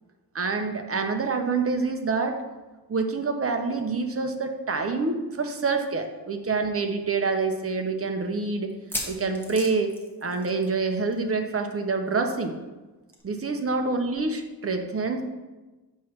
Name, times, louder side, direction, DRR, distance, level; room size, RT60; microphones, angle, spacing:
voice 1, 0.3-2.4 2.9-8.7 9.1-9.9 10.2-12.5 13.2-15.2, right 4 dB, 35° right, 5 dB, 0.8 m, -27 dB
sound 1, 6.0-6.1 6.4-6.5 7.1-7.2 8.7-10.8 11.1-11.3 11.6-11.7 13.1-13.2, left 1 dB, 5° left, 1.2 m, -36 dB
7.4 x 3.2 x 6.0 m, 1.2 s
wide cardioid pair, 110°, 41 cm